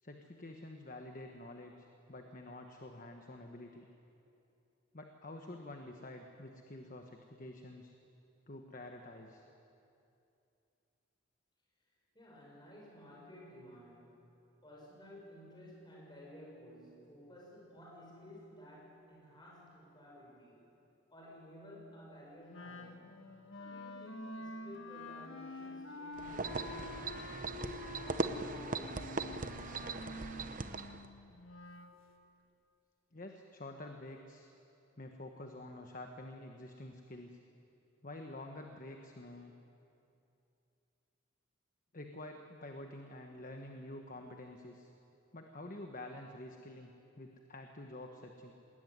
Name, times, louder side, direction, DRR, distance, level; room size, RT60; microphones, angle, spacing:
voice 1, 0.0-3.9 4.9-7.9 8.5-9.5 33.1-34.5 35.0-37.4 38.0-39.5 41.9-44.9 45.3-48.5, left 1 dB, 40° left, 3 dB, 1.3 m, -48 dB
voice 2, 12.1-14.3 14.6-20.6 21.1-23.2 23.6-27.7 28.0-29.4, equal, 20° left, -4 dB, 6.9 m, -54 dB
Wind instrument woodwind instrument, 22.5-32.0, left 2 dB, 80° left, 1.6 m, -47 dB
sound 1, 26.2-31.1, right 3 dB, 40° right, 0.8 m, -39 dB
20.0 x 19.5 x 9.5 m, 2.8 s
head